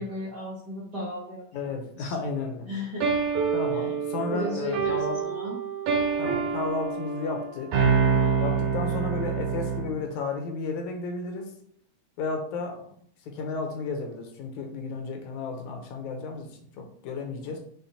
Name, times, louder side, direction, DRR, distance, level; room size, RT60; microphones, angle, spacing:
voice 1, 0.0-2.1 2.6-3.1 3.7-3.9 4.2-5.6, left 1 dB, 50° right, -6 dB, 1.3 m, -35 dB
voice 2, 1.5-2.7 3.5-5.2 6.2-7.7 8.4-11.5 12.2-12.9 13.3-16.5 16.8-17.6, left 3 dB, 75° left, 3 dB, 2.2 m, -33 dB
sound 1, 3.0-10.0, right 6 dB, 70° right, 2.5 m, -26 dB
5.8 x 4.2 x 4.1 m, 0.63 s
omnidirectional pair, 3.7 m